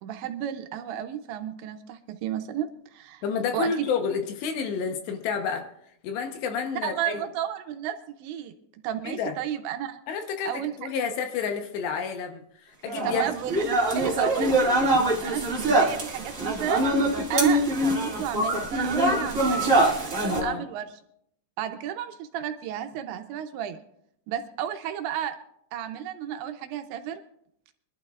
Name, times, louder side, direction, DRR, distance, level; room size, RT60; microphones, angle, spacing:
voice 1, 0.0-3.2 3.5-3.9 6.8-8.5 8.8-10.0 10.5-10.7 13.0-13.6 14.0-16.8 17.3-20.9 21.6-23.8 24.3-25.4 25.7-27.2, right 10 dB, 80° right, 6 dB, 2.9 m, -32 dB
voice 2, 3.2-5.7 6.0-7.2 9.0-9.3 10.1-13.2 20.3-20.6, left 6 dB, 75° left, 5 dB, 3.0 m, -30 dB
sound 1, 12.8-20.4, right 1 dB, 35° right, 1.3 m, -24 dB
24.5 x 12.0 x 2.5 m, 0.74 s
omnidirectional pair, 5.4 m